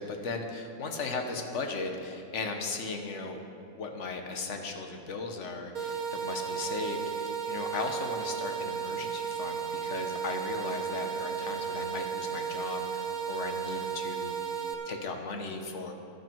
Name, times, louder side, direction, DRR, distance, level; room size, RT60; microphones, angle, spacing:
voice 1, 0.0-3.4 3.7-15.9, left 3 dB, 55° left, 4 dB, 1.4 m, -37 dB
sound 1, 5.7-14.7, right 7 dB, 80° right, 1.8 m, -34 dB
13.5 x 11.5 x 4.6 m, 2.6 s
omnidirectional pair, 1.5 m